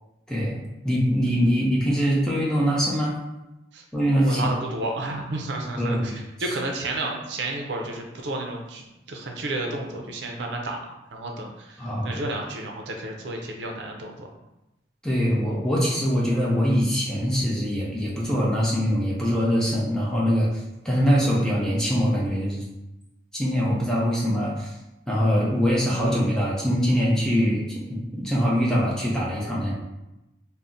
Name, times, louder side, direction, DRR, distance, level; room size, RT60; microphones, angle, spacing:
voice 1, 0.8-3.1 3.9-4.4 5.8-6.1 11.8-12.2 15.0-20.5 20.8-22.6 23.3-24.7 25.1-27.6 27.9-29.7, equal, 5° left, -6 dB, 0.5 m, -23 dB
voice 2, 4.2-8.8 9.1-10.8 11.1-14.3, right 2 dB, 80° right, 1 dB, 0.5 m, -31 dB
2.6 x 2.0 x 3.5 m, 0.95 s
head